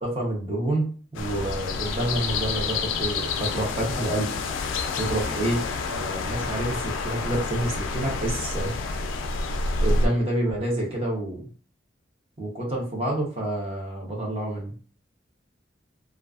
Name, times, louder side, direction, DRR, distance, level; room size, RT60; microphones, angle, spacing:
voice 1, 0.0-4.3 5.0-5.6 5.9-8.7 9.8-11.5 12.4-14.7, right 1 dB, 30° right, -1 dB, 0.7 m, -28 dB
sound 1, 1.1-10.1, left 3 dB, 80° left, 0.3 m, -28 dB
2.3 x 2.3 x 2.3 m, 0.41 s
head